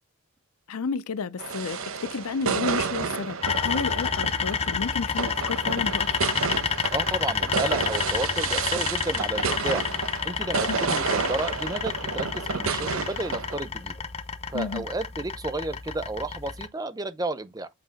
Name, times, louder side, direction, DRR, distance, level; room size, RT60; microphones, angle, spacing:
voice 1, 0.7-6.2 10.7-10.8 14.5-14.8, left 5 dB, 80° left, 0.5 m, -32 dB
sound 1, 1.4-13.6, right 5 dB, 70° right, 0.9 m, -30 dB
sound 2, 3.4-16.7, left 6 dB, 25° left, 0.6 m, -29 dB
voice 2, 6.9-9.9 10.2-13.9 14.5-17.7, right 2 dB, 15° right, 0.5 m, -32 dB
7.7 x 2.8 x 5.1 m
head